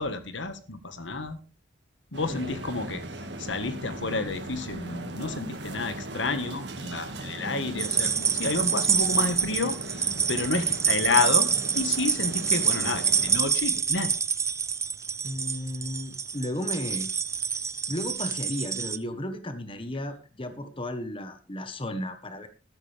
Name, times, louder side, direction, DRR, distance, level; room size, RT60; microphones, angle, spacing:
voice 1, 0.0-1.4 2.1-3.0 3.4-9.8 10.3-11.5 11.7-14.2, left 3 dB, 75° left, 10 dB, 1.6 m, -30 dB
sound 1, 2.1-13.4, right 1 dB, 60° right, 2.0 m, -38 dB
voice 2, 2.3-2.6 15.2-17.1 17.9-22.5, left 1 dB, 30° left, 9 dB, 1.3 m, -34 dB
sound 2, 7.8-19.0, right 6 dB, 15° right, 0.5 m, -27 dB
13.5 x 13.0 x 3.4 m, 0.34 s
head